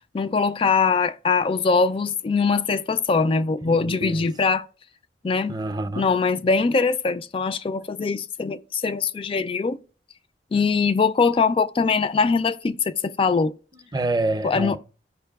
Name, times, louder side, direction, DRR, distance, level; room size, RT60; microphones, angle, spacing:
voice 1, 0.1-4.7 5.2-5.6 6.0-9.8 10.5-13.5 14.4-14.8, left 4 dB, 30° left, 0.3 m, -22 dB
voice 2, 3.6-4.3 5.5-6.1 13.7-14.8, right 2 dB, 25° right, 0.5 m, -27 dB
14.0 x 5.3 x 2.3 m
head